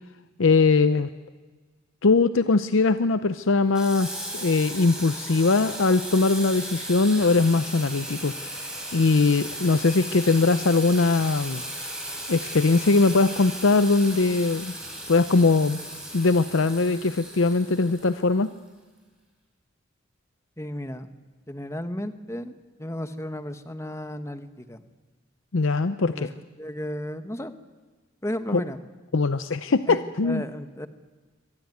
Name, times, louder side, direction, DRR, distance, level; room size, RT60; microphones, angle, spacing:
voice 1, 0.4-1.1 2.0-8.6 8.9-11.6 12.3-14.7 15.1-15.8 16.1-18.5 25.5-26.3 28.5-28.6 29.1-30.4, left 3 dB, 75° left, 12 dB, 0.7 m, -21 dB
Water tap faucet / Sink (filling or washing), 3.7-18.5, right 1 dB, 5° right, 5.3 m, -36 dB
voice 2, 20.6-21.1 21.5-22.5 22.8-24.8 26.1-26.3 26.6-27.5 28.2-28.8 29.9-30.9, left 1 dB, 15° left, 9 dB, 1.2 m, -34 dB
24.5 x 18.5 x 9.5 m, 1.3 s
head